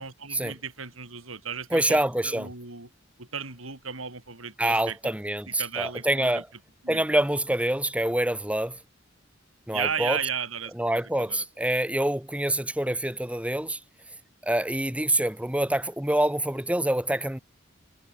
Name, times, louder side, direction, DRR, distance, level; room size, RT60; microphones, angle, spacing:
voice 1, 0.0-2.0 2.2-2.9 3.2-5.1 5.5-6.4 6.8-7.2 9.7-11.0 11.3-11.4, right 7 dB, 85° right, 5.9 m, -34 dB
voice 2, 1.7-2.5 4.6-6.5 6.9-8.8 9.7-10.2 10.8-13.8 14.4-17.4, right 1 dB, 5° right, 2.0 m, -26 dB
head